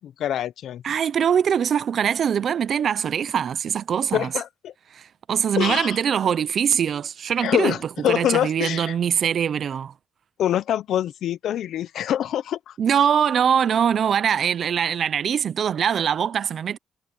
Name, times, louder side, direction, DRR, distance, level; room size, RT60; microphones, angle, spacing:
voice 1, 0.0-0.8 4.1-4.7 5.6-6.0 7.4-8.9 10.4-12.7, left 11 dB, 70° left, 0.7 m, -25 dB
voice 2, 0.8-4.3 4.9-7.8 8.1-9.9 12.8-16.8, right 8 dB, 50° right, 0.6 m, -22 dB
cardioid pair, 135°, 0 cm